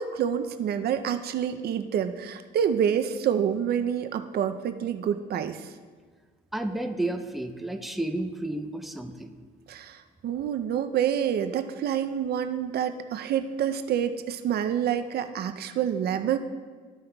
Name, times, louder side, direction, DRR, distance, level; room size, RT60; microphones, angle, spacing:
voice 1, 0.0-5.6 9.7-10.0 10.2-16.4, right 9 dB, 60° right, 9 dB, 0.5 m, -27 dB
voice 2, 6.5-9.3, right 1 dB, ahead, 6 dB, 0.6 m, -31 dB
14.0 x 5.4 x 2.3 m, 1.5 s
cardioid pair, 90°, 19 cm